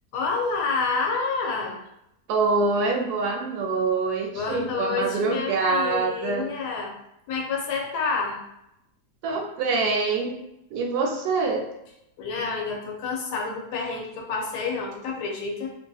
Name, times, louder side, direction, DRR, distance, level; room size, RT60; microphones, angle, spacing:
voice 1, 0.1-1.8 4.3-7.0 7.3-8.4 12.2-15.7, left 4 dB, 90° left, 0 dB, 1.2 m, -28 dB
voice 2, 2.3-6.5 9.2-10.4 10.7-11.7, right 3 dB, 80° right, 1 dB, 1.1 m, -25 dB
2.8 x 2.6 x 2.3 m, 0.83 s
omnidirectional pair, 1.7 m